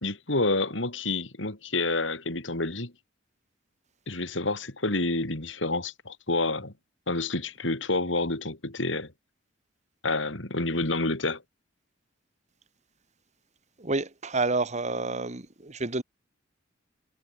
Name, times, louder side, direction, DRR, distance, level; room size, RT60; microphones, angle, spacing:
voice 1, 0.0-2.9 4.1-6.7 7.1-9.1 10.0-11.4, left 2 dB, 70° left, 3.9 m, -28 dB
voice 2, 13.8-16.0, right 3 dB, 40° right, 1.9 m, -29 dB
head